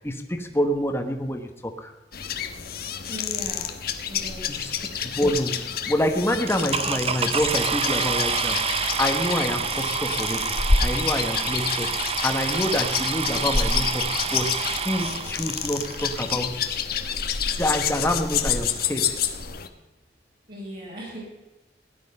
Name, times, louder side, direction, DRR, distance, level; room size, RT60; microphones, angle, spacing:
voice 1, 0.0-1.9 4.5-10.5 10.8-16.6 17.6-19.2, left 1 dB, 15° left, 5 dB, 1.3 m, -27 dB
sound 1, 2.1-19.7, left 6 dB, 60° left, 1.2 m, -28 dB
voice 2, 3.1-4.8 20.5-21.2, equal, 60° right, -5 dB, 5.5 m, -39 dB
sound 2, 6.5-16.4 17.2-17.3 17.8-17.9 18.1-18.4, right 6 dB, 35° right, 0.8 m, -28 dB
17.0 x 11.0 x 5.4 m, 1.1 s
head